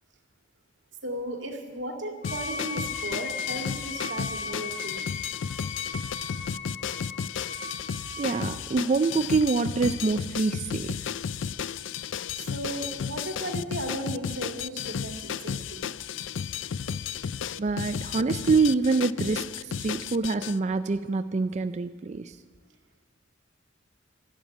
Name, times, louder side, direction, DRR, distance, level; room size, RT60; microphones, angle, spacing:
voice 1, 1.0-5.1 12.4-15.9, right 1 dB, 75° right, 4 dB, 2.1 m, -36 dB
sound 1, 2.2-20.6, left 7 dB, 80° left, 0.4 m, -33 dB
Wind instrument woodwind instrument, 2.2-8.6, left 4 dB, 40° left, 1.0 m, -37 dB
voice 2, 8.2-11.1 17.6-22.4, right 4 dB, 35° right, 9 dB, 0.4 m, -26 dB
13.0 x 12.0 x 8.8 m, 1.5 s
head